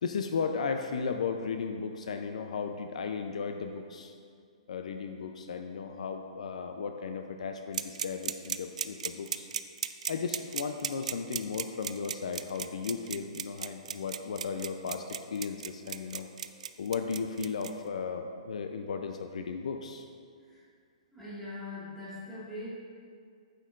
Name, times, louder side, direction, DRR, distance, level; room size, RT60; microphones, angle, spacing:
voice 1, 0.0-4.1 4.7-9.5 10.1-16.3 16.8-20.1, left 5 dB, 70° left, 6 dB, 0.4 m, -35 dB
sound 1, 7.7-17.7, right 8 dB, 75° right, 0.3 m, -35 dB
voice 2, 21.1-22.7, left 2 dB, 5° left, -10 dB, 1.8 m, -41 dB
9.1 x 6.5 x 2.5 m, 2.2 s
hypercardioid pair, 165°, 4 cm